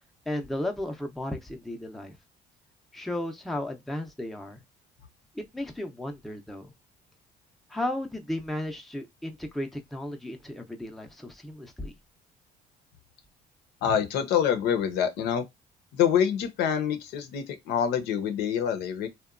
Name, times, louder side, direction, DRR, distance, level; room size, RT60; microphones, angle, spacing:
voice 1, 0.3-2.1 2.9-4.6 5.3-6.7 7.7-11.9, left 1 dB, ahead, 0.5 m, -34 dB
voice 2, 13.8-15.5 15.9-19.1, left 8 dB, 85° left, 0.6 m, -26 dB
2.8 x 2.1 x 2.3 m
cardioid pair, 110°, 17 cm